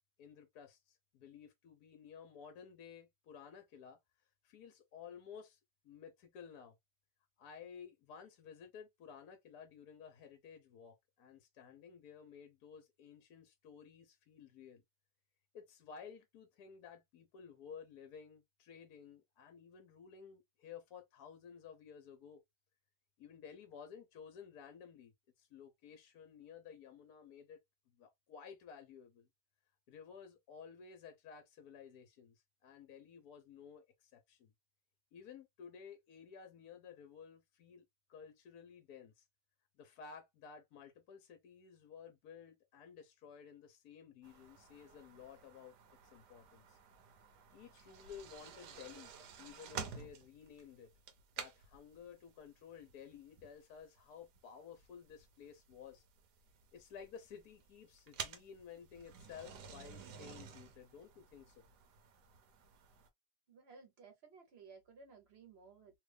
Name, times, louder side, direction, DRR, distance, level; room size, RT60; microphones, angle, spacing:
voice 1, 0.2-4.0 4.4-6.8 7.4-14.8 15.5-22.4 23.2-27.6 27.9-29.3 29.9-34.5 35.1-39.3 39.8-45.7 46.0-46.8 47.5-49.1 49.4-50.9 51.4-56.0 56.7-61.6, left 7 dB, 65° left, 1.1 m, -54 dB
sound 1, 44.2-63.1, right 7 dB, 70° right, 1.2 m, -52 dB
voice 2, 63.5-66.0, right 5 dB, 45° right, 0.9 m, -58 dB
3.2 x 2.4 x 3.2 m
omnidirectional pair, 1.9 m